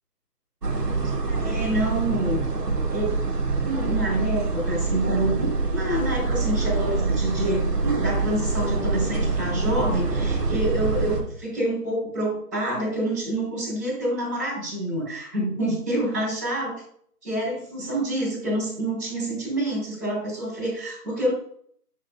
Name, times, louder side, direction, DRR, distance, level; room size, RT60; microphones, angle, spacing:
sound 1, 0.6-11.2, right 3 dB, 80° right, 1.7 m, -25 dB
voice 1, 1.2-2.4 2.9-3.2 3.6-16.8 17.2-21.3, right 1 dB, ahead, -17 dB, 2.6 m, -27 dB
6.9 x 6.5 x 2.7 m, 0.62 s
figure-of-eight pair, 180°, 47 cm